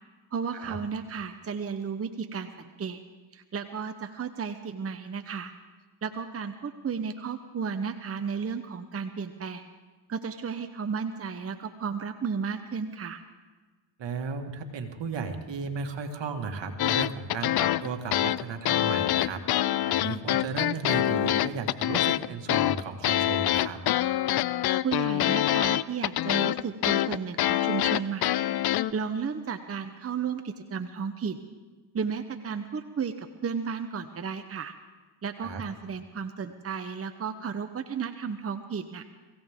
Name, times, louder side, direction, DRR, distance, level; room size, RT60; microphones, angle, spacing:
voice 1, 0.3-3.0 3.3-5.5 6.0-9.6 10.1-13.2 24.8-28.3 28.9-31.4 31.9-34.7 35.2-39.0, right 6 dB, 30° right, 8 dB, 0.9 m, -33 dB
voice 2, 14.0-19.4 19.9-23.8 35.4-35.6, right 5 dB, 65° right, 5 dB, 2.0 m, -35 dB
sound 1, 16.8-28.9, left 13 dB, 55° left, 0.5 m, -25 dB
24.0 x 16.0 x 3.7 m, 1.3 s
cardioid pair, 70°, 47 cm